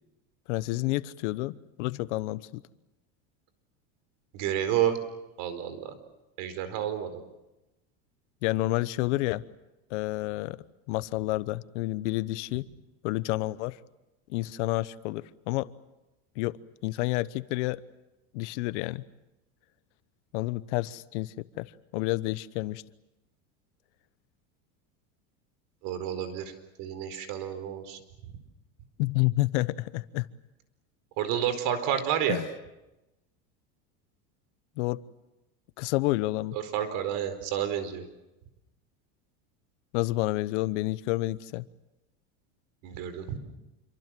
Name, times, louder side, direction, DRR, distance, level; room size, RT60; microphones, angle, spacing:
voice 1, 0.5-2.6 8.4-9.4 9.9-10.6 10.9-12.6 13.0-13.8 14.3-15.7 16.4-16.6 16.8-17.8 18.3-19.0 20.3-22.8 29.0-30.3 32.3-32.5 34.8-35.0 35.8-36.6 39.9-41.7, left 19 dB, 70° left, 16 dB, 1.1 m, -29 dB
voice 2, 4.3-5.0 5.4-5.9 6.4-7.1 25.8-26.5 26.8-28.0 31.2-32.4 36.5-38.0 42.8-43.4, right 10 dB, 60° right, 10 dB, 4.7 m, -30 dB
27.5 x 25.0 x 7.7 m, 0.97 s
supercardioid pair, 135°, 36 cm